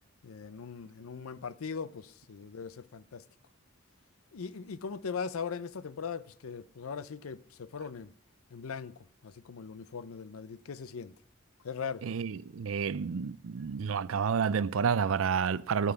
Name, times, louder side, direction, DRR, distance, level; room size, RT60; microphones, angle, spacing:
voice 1, 0.2-3.2 4.3-8.1 8.5-8.9 9.2-11.1 11.6-12.1, left 6 dB, 85° left, 0.5 m, -40 dB
voice 2, 12.0-15.9, right 6 dB, 75° right, 0.4 m, -30 dB
9.1 x 6.9 x 8.9 m
head